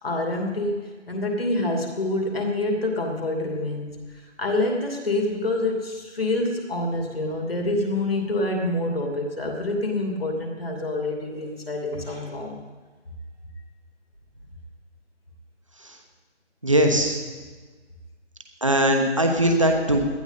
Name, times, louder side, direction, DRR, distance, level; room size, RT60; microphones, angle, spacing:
voice 1, 0.0-3.9 4.4-12.6, left 2 dB, 50° left, 1 dB, 2.8 m, -26 dB
voice 2, 16.6-17.2 18.6-20.0, right 1 dB, 25° right, 3 dB, 1.1 m, -20 dB
18.5 x 11.5 x 4.1 m, 1.4 s
figure-of-eight pair, 180°, 36 cm